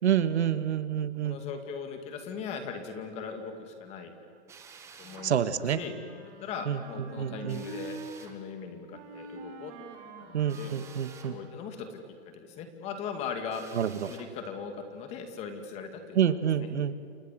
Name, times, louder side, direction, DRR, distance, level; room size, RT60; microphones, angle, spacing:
voice 1, 0.0-1.4 5.2-5.8 6.7-7.6 10.3-11.4 13.7-14.1 16.2-17.0, right 9 dB, 70° right, 12 dB, 1.8 m, -28 dB
voice 2, 1.2-4.1 5.0-5.4 5.7-6.0 6.4-9.7 10.2-10.7 11.3-12.0 12.3-13.6 14.0-16.7, left 6 dB, 20° left, 7 dB, 2.5 m, -39 dB
Drill, 4.5-5.3 7.5-8.4 10.5-11.4 13.5-14.3, right 6 dB, 10° right, 1.6 m, -51 dB
Wind instrument woodwind instrument, 5.0-8.2 8.9-11.7, right 4 dB, 30° right, 4.4 m, -46 dB
29.0 x 27.0 x 7.6 m, 2.4 s
hypercardioid pair, 165°, 34 cm